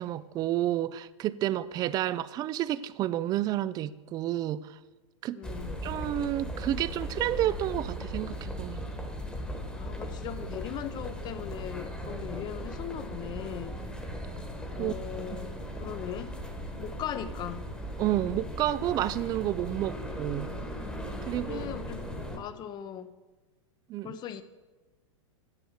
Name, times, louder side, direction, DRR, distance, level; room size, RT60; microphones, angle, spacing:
voice 1, 0.0-4.8 5.2-5.4 5.8-8.8 14.8-14.9 15.3-15.4 18.0-20.5 21.3-21.7 23.9-24.2, right 13 dB, 25° right, 0.3 m, -30 dB
voice 2, 5.3-5.8 9.8-13.8 14.7-16.4 16.8-17.6 21.5-22.0 22.3-23.1 24.0-24.4, left 10 dB, 25° left, 0.6 m, -39 dB
sound 1, 5.4-22.4, equal, 5° left, 1.2 m, -38 dB
9.8 x 6.8 x 6.4 m
hypercardioid pair, 130°, 16 cm